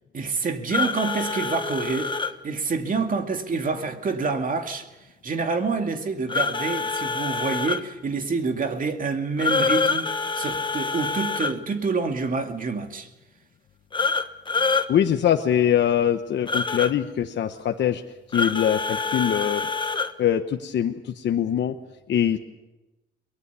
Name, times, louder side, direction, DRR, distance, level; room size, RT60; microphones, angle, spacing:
voice 1, 0.1-2.1 2.4-4.9 5.2-10.1 10.3-13.1, right 4 dB, 45° right, 2.3 m, -27 dB
sound 1, 0.7-2.3 6.3-7.8 9.4-11.5 13.9-14.9 16.5-16.9 18.3-20.1, left 4 dB, 25° left, 1.2 m, -26 dB
voice 2, 14.9-18.0 18.3-19.7 20.2-21.7 22.1-22.4, left 9 dB, 65° left, 1.1 m, -23 dB
23.0 x 19.0 x 7.0 m
cardioid pair, 90°, 20 cm